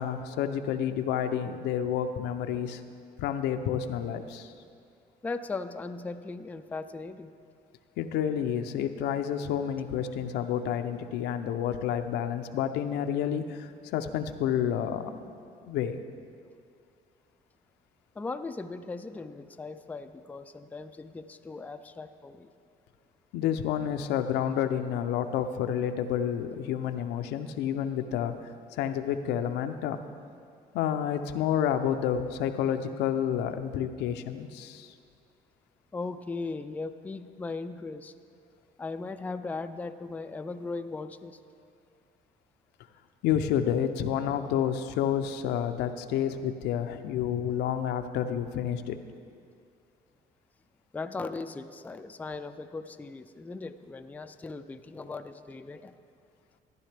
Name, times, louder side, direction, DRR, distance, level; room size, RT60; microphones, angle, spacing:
voice 1, 0.0-2.8 3.2-4.5 8.0-15.3 15.7-16.0 23.3-28.3 28.7-30.0 30.7-34.9 43.2-49.0, left 9 dB, 85° left, 8 dB, 0.6 m, -29 dB
voice 2, 5.2-7.3 18.2-22.5 35.9-38.1 38.8-41.4 50.9-56.0, left 3 dB, 10° left, 8 dB, 0.3 m, -38 dB
13.5 x 11.0 x 3.3 m, 2.3 s
cardioid pair, 110°, 17 cm